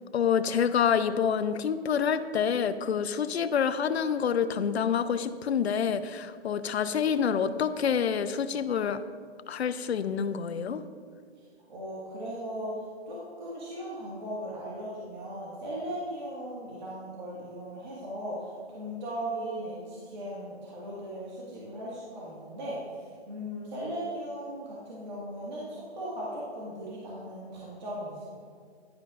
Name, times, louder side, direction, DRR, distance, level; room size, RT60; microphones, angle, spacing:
voice 1, 0.1-9.0 9.5-10.8, left 7 dB, 75° left, 12 dB, 0.7 m, -27 dB
voice 2, 11.7-12.7 13.1-28.4, right 1 dB, 45° right, -7 dB, 2.0 m, -38 dB
11.5 x 10.5 x 2.5 m, 2.1 s
hypercardioid pair, 170°, 33 cm